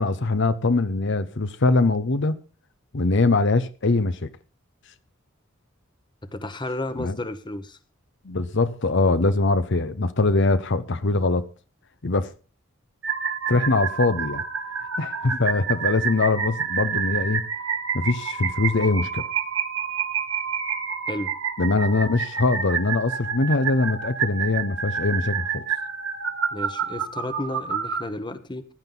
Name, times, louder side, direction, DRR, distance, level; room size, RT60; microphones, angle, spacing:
voice 1, 0.0-2.4 2.9-4.3 7.0-7.1 8.2-11.5 12.0-12.3 13.5-14.4 15.0-17.5 17.9-19.2 21.6-25.6, left 3 dB, 60° left, 0.8 m, -22 dB
voice 2, 6.2-7.8 21.1-21.3 26.5-28.6, left 1 dB, 20° left, 1.1 m, -32 dB
sound 1, 13.0-28.0, right 7 dB, 70° right, 2.3 m, -28 dB
16.0 x 11.0 x 3.9 m
head